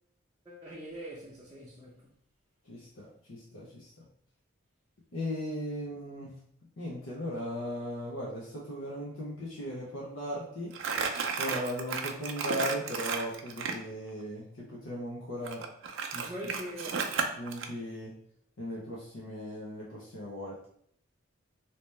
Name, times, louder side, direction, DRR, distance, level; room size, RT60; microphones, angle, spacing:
voice 1, 0.4-2.1 16.3-17.2, equal, 20° right, 0.5 m, -42 dB
voice 2, 2.7-3.9 5.1-6.3 6.8-10.7 11.4-15.6 16.1-16.3 17.4-18.1 18.6-20.7, equal, 75° left, 0.7 m, -37 dB
Crumpling crinkling, 10.7-13.8 15.5-17.7, right 5 dB, 65° right, 0.4 m, -33 dB
3.2 x 2.8 x 3.2 m
head